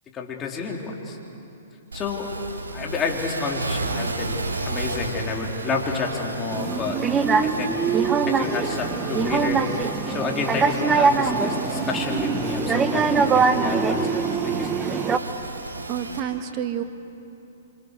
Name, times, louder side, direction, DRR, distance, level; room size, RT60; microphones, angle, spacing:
voice 1, 0.1-1.2 1.9-2.3 2.7-7.0 7.4-7.9 8.2-9.6 10.1-14.2 14.4-15.0, left 4 dB, 20° left, -1 dB, 3.8 m, -30 dB
sound 1, 1.9-16.2, right 3 dB, 90° right, 4.5 m, -33 dB
sound 2, 6.5-15.2, right 5 dB, 20° right, 1.1 m, -23 dB
voice 2, 15.9-16.8, right 10 dB, 35° right, 7 dB, 1.7 m, -29 dB
27.0 x 27.0 x 6.8 m, 2.9 s
hypercardioid pair, 125°, 0 cm